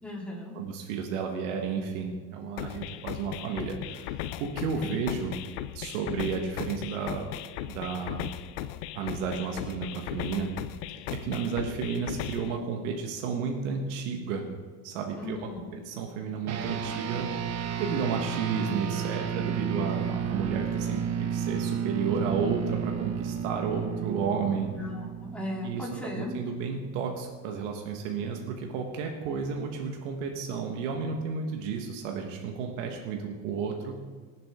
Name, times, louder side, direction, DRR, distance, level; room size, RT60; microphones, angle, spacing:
voice 1, 0.0-0.5 4.7-5.0 15.1-15.6 24.8-24.9 25.2-26.3, left 1 dB, 5° left, -4 dB, 3.6 m, -36 dB
voice 2, 0.5-5.4 5.7-7.3 7.7-8.3 8.9-10.5 10.9-14.5 14.8-17.4 17.8-24.7 25.6-34.0, right 6 dB, 90° right, 2 dB, 1.5 m, -32 dB
sound 1, 2.6-12.6, left 12 dB, 80° left, 0.6 m, -37 dB
sound 2, 16.5-26.2, right 7 dB, 45° right, 1.0 m, -32 dB
19.0 x 7.7 x 3.7 m, 1.5 s
supercardioid pair, 105°, 36 cm